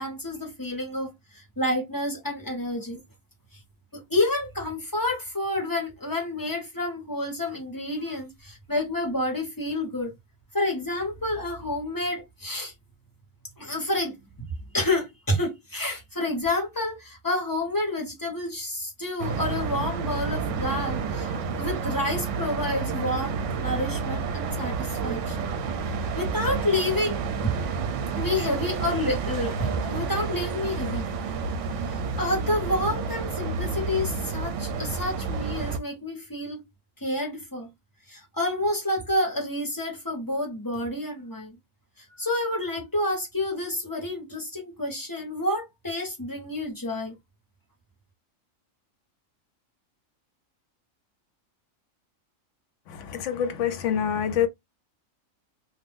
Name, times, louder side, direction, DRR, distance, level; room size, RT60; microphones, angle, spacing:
voice 1, 0.0-3.0 3.9-10.1 10.5-12.7 13.6-21.3 21.6-25.5 26.1-27.5 28.2-31.1 31.9-36.6 37.0-37.7 38.1-41.6 42.1-47.1, left 1 dB, 15° left, 1.1 m, -29 dB
sound 1, 19.2-35.8, right 5 dB, 70° right, 0.9 m, -30 dB
voice 2, 53.1-54.5, left 9 dB, 70° left, 0.9 m, -25 dB
2.6 x 2.4 x 3.5 m
omnidirectional pair, 1.4 m